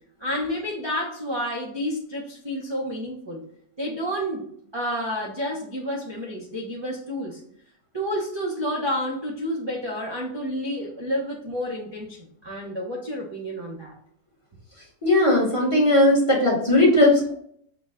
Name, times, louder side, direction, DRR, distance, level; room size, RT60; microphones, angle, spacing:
voice 1, 0.2-3.4 3.8-4.5 4.7-7.4 7.9-13.9, equal, 40° right, -5 dB, 0.4 m, -30 dB
voice 2, 15.0-17.3, left 1 dB, 25° left, -4 dB, 0.9 m, -18 dB
5.8 x 2.2 x 3.6 m, 0.67 s
omnidirectional pair, 1.8 m